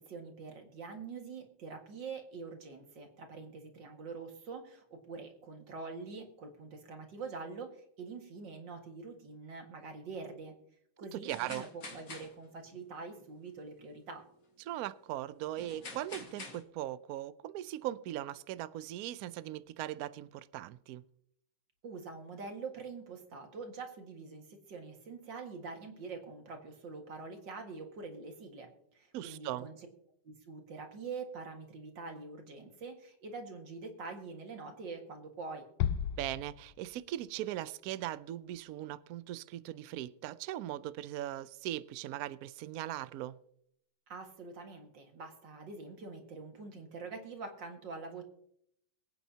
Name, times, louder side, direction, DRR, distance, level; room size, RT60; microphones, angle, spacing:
voice 1, 0.0-10.5 11.0-14.2 21.8-29.8 30.2-35.7 44.1-48.2, right 4 dB, 65° right, 2.5 m, -45 dB
voice 2, 11.1-11.7 14.7-21.0 29.1-29.7 36.2-43.4, right 13 dB, 90° right, 0.8 m, -39 dB
sound 1, 11.3-12.8 13.2-13.3 15.6-16.6, left 3 dB, 45° left, 2.1 m, -47 dB
Bass drum, 35.8-37.2, left 10 dB, 75° left, 1.3 m, -35 dB
23.0 x 9.2 x 2.8 m
omnidirectional pair, 2.2 m